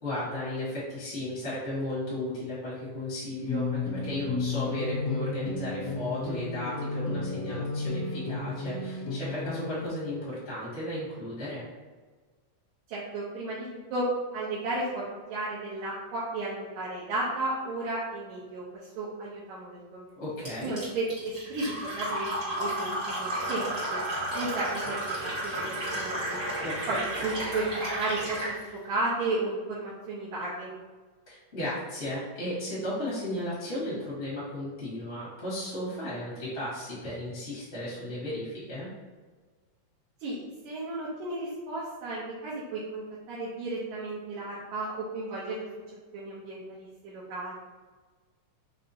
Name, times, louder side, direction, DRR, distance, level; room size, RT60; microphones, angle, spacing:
voice 1, 0.0-11.7 20.1-20.7 26.6-27.0 31.3-38.9, left 1 dB, 40° left, -9 dB, 1.1 m, -35 dB
sound 1, 3.5-9.9, left 3 dB, 80° left, 1.5 m, -32 dB
voice 2, 12.9-14.1 14.3-15.0 15.3-18.6 19.0-20.0 20.6-24.0 24.3-25.2 25.4-26.4 26.9-28.5 28.8-30.7 40.2-45.6 46.1-47.5, right 2 dB, 75° right, -9 dB, 2.0 m, -33 dB
Fill (with liquid), 20.4-28.6, right 1 dB, 45° right, 1.1 m, -32 dB
5.4 x 2.0 x 2.7 m, 1.4 s
omnidirectional pair, 3.5 m